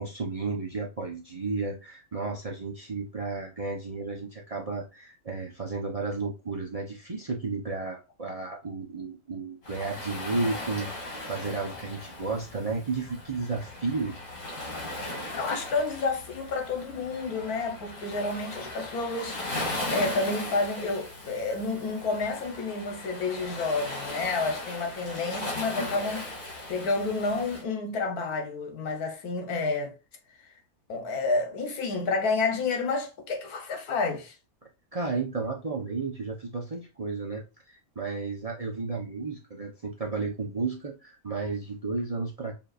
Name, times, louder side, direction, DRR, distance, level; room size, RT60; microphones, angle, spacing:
voice 1, 0.0-14.1 34.9-42.5, right 3 dB, 30° right, 0.7 m, -33 dB
Waves surf, 9.6-27.6, left 2 dB, 55° left, 3.1 m, -38 dB
voice 2, 15.3-29.9 30.4-30.5 30.9-34.3, left 3 dB, 80° left, 1.6 m, -30 dB
6.9 x 2.9 x 2.4 m
omnidirectional pair, 1.6 m